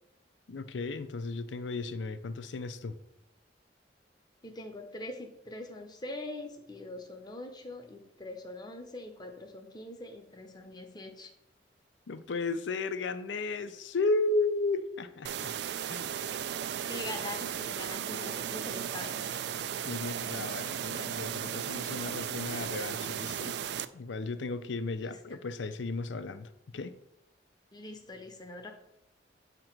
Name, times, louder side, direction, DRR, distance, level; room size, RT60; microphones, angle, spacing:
voice 1, 0.5-3.0 12.1-15.5 15.9-16.1 19.8-23.6 23.9-26.9, left 3 dB, 80° left, 11 dB, 0.5 m, -34 dB
voice 2, 4.4-11.3 16.9-19.3 24.9-25.4 27.7-28.7, left 2 dB, 25° left, 5 dB, 0.8 m, -43 dB
sound 1, 15.2-23.9, right 9 dB, 65° right, 0.3 m, -36 dB
7.6 x 3.0 x 5.9 m, 0.82 s
head